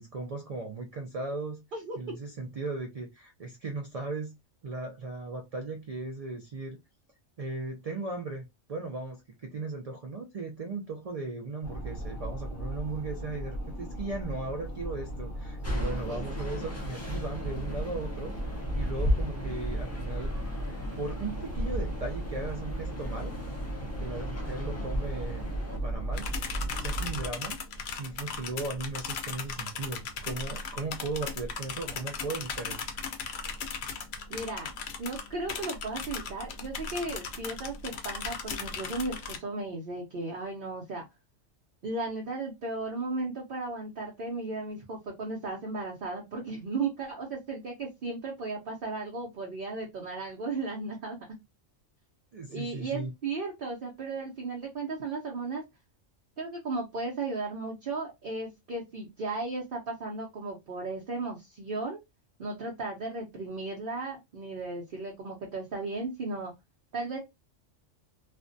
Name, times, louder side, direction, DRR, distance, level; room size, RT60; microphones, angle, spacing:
voice 1, 0.0-1.6 2.0-4.3 4.6-6.8 7.4-18.3 18.8-20.3 21.0-23.3 23.8-25.5 25.8-26.3 26.7-27.6 28.0-32.8 52.3-53.1, right 3 dB, 75° right, 0.3 m, -37 dB
sound 1, 11.6-27.3, right 1 dB, 40° left, 1.0 m, -37 dB
sound 2, 15.6-25.8, left 1 dB, 20° left, 0.4 m, -35 dB
sound 3, 26.1-39.4, left 5 dB, 65° left, 0.8 m, -37 dB
voice 2, 34.3-34.7 35.0-41.1 41.8-51.2 52.5-55.6 56.4-62.0 62.4-66.5 66.9-67.2, right 3 dB, 55° right, 0.8 m, -35 dB
2.4 x 2.2 x 2.5 m
omnidirectional pair, 1.3 m